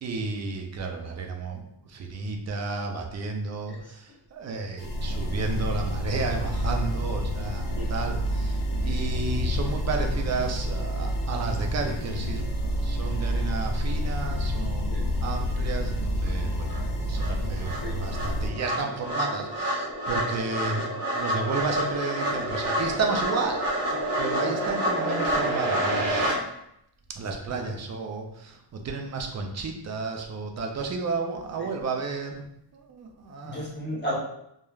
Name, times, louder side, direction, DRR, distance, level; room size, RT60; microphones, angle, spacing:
voice 1, 0.0-1.6 1.9-4.0 4.3-14.9 15.2-20.9 21.2-26.3 27.2-32.4 32.7-33.6, right 4 dB, 40° right, 3 dB, 0.5 m, -32 dB
sound 1, 4.8-18.5, equal, 50° left, 0.6 m, -28 dB
sound 2, 16.3-16.4 16.7-26.4, right 1 dB, 70° right, 0.9 m, -28 dB
voice 2, 33.4-34.2, equal, 25° left, -5 dB, 1.0 m, -34 dB
3.0 x 2.3 x 2.3 m, 0.76 s
cardioid pair, 120°, 44 cm